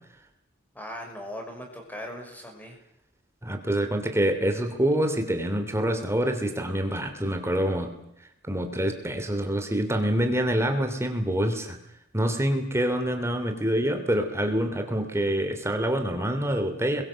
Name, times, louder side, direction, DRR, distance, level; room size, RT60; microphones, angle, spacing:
voice 1, 0.7-2.8, left 1 dB, 10° left, 3 dB, 5.8 m, -39 dB
voice 2, 3.4-7.9 8.4-11.8 12.1-17.0, right 1 dB, 15° right, 6 dB, 3.1 m, -26 dB
28.0 x 22.5 x 7.6 m, 0.77 s
head